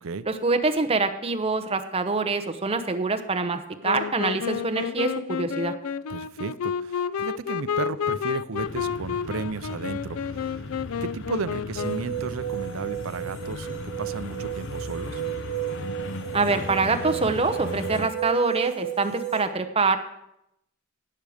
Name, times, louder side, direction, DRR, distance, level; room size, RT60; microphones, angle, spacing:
voice 1, 0.3-5.7 16.3-20.0, right 3 dB, 25° right, 7 dB, 0.9 m, -25 dB
Wind instrument woodwind instrument, 3.8-12.2, left 7 dB, 80° left, 0.4 m, -30 dB
voice 2, 6.1-10.6 11.0-15.2, right 4 dB, 70° right, 14 dB, 0.6 m, -34 dB
sound 1, 8.6-18.1, left 3 dB, 60° left, 0.8 m, -37 dB
sound 2, 11.8-19.4, right 12 dB, 30° left, 3.2 m, -33 dB
17.5 x 6.5 x 5.0 m, 0.82 s
head